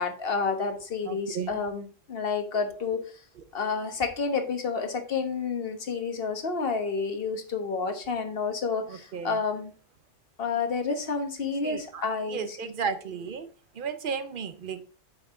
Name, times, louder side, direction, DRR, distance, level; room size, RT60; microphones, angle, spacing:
voice 1, 0.0-3.0 3.5-9.7 10.4-12.6, left 5 dB, 50° left, 1.4 m, -30 dB
voice 2, 1.1-1.6 8.9-9.4 11.6-13.5 13.8-14.8, right 6 dB, 50° right, 0.8 m, -34 dB
8.0 x 5.7 x 3.7 m
omnidirectional pair, 1.3 m